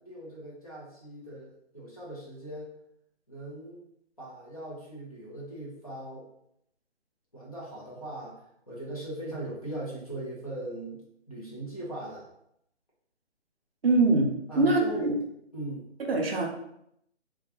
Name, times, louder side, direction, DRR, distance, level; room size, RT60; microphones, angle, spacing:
voice 1, 0.0-2.7 3.3-3.8 4.2-6.3 7.3-12.3 14.5-15.1 15.5-15.9, right 1 dB, 30° left, -6 dB, 0.5 m, -39 dB
voice 2, 13.8-15.1 16.1-16.5, right 2 dB, 55° right, 1 dB, 0.5 m, -23 dB
2.2 x 2.1 x 2.8 m, 0.74 s
hypercardioid pair, 170°, 35 cm